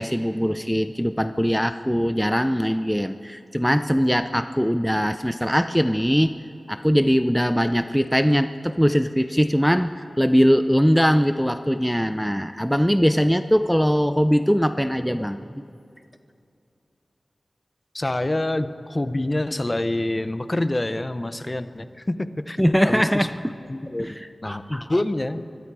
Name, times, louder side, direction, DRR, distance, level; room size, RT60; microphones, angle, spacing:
voice 1, 0.0-6.3 6.7-15.4 22.6-23.5 24.0-24.8, equal, ahead, 9 dB, 0.6 m, -21 dB
voice 2, 17.9-23.3 23.7-25.4, left 1 dB, 30° left, 11 dB, 0.9 m, -27 dB
25.0 x 21.5 x 4.9 m, 2.6 s
wide cardioid pair, 55°, 0 cm